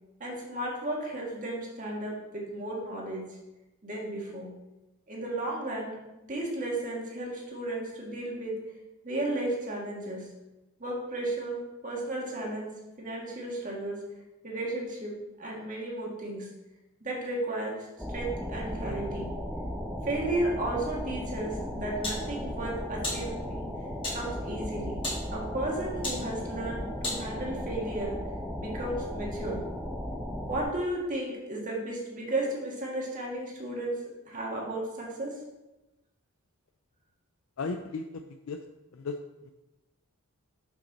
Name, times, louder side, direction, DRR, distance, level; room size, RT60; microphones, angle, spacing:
voice 1, 0.2-3.4 3.8-4.5 5.1-6.0 6.3-8.5 9.0-10.3 10.8-14.0 14.4-16.5 17.0-19.3 20.0-23.7 24.1-25.0 25.3-28.1 28.6-29.6 30.5-34.0 34.3-35.3, right 1 dB, 35° right, -3 dB, 1.7 m, -34 dB
sound 1, 18.0-30.7, equal, ahead, 0.8 m, -36 dB
sound 2, 21.4-27.7, left 1 dB, 25° left, 2.0 m, -40 dB
voice 2, 37.6-38.6 38.9-39.2 39.4-39.5, left 4 dB, 65° left, 5 dB, 0.4 m, -35 dB
6.4 x 6.2 x 4.2 m, 1.0 s
head